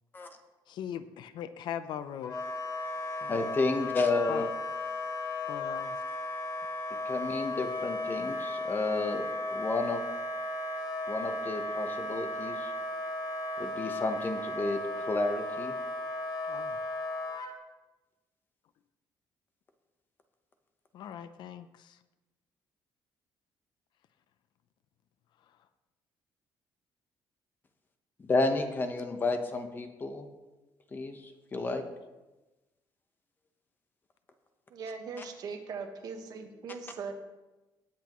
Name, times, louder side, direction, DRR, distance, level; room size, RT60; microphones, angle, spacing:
voice 1, 0.7-2.4 3.2-3.4 4.3-4.5 5.5-6.0 16.5-16.8 20.9-21.7, left 9 dB, 65° left, 12 dB, 0.6 m, -39 dB
Wind instrument woodwind instrument, 2.2-17.5, left 2 dB, 45° left, 1.5 m, -35 dB
voice 2, 3.3-4.5 7.0-10.0 11.1-12.7 13.6-15.7 28.2-30.3 30.9-31.8, left 3 dB, 25° left, 6 dB, 1.0 m, -31 dB
voice 3, 34.7-37.1, right 5 dB, 50° right, 4 dB, 1.4 m, -40 dB
18.5 x 8.2 x 3.1 m, 1.1 s
cardioid pair, 170°, 8 cm